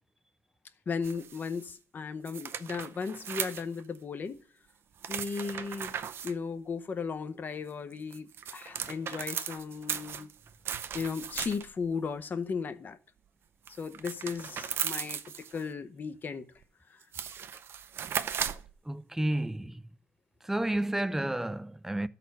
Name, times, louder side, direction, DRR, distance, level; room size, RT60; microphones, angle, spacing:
voice 1, 0.9-4.4 5.1-5.9 6.2-10.3 10.9-13.0 13.8-15.2 15.5-16.5 16.9-17.0, left 5 dB, 40° left, 0.8 m, -36 dB
sound 1, 1.0-1.6 2.3-4.0 5.0-6.3 7.9-11.8 13.7-15.6 16.6-16.7 17.0-18.7, right 8 dB, 55° right, 0.5 m, -37 dB
voice 2, 18.9-19.9 20.4-22.1, right 1 dB, 10° right, 0.4 m, -31 dB
12.5 x 4.2 x 5.4 m
cardioid pair, 95°, 5 cm